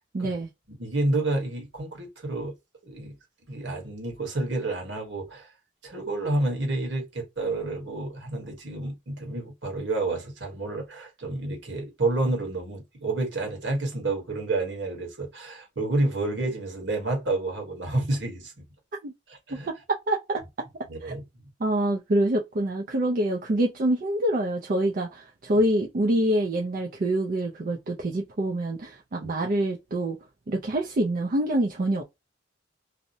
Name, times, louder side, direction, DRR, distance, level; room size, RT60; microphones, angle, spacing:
voice 1, 0.1-0.5 19.0-19.1 19.5-20.4 21.0-21.1 21.6-30.2 30.5-32.0, right 1 dB, 45° right, 0.4 m, -26 dB
voice 2, 0.8-2.5 2.8-3.2 3.5-5.5 5.8-18.5 19.3-19.7 20.9-21.2 29.2-29.3, right 2 dB, 65° right, 1.2 m, -29 dB
2.7 x 2.1 x 2.6 m
head